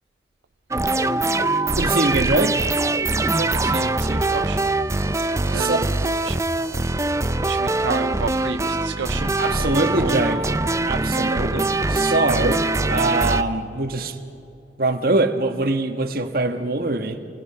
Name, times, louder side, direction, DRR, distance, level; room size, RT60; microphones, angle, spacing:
sound 1, 0.7-13.4, right 2 dB, 15° right, 0.5 m, -22 dB
voice 1, 1.8-2.7 5.5-6.1 9.4-10.5 10.9-14.2 14.8-17.2, right 2 dB, 55° right, 6 dB, 1.4 m, -23 dB
voice 2, 3.3-4.6 5.5-5.9 6.2-6.4 7.4-9.4 9.8-10.4, right 5 dB, 75° right, 9 dB, 0.5 m, -31 dB
27.5 x 20.0 x 5.6 m, 2.7 s
head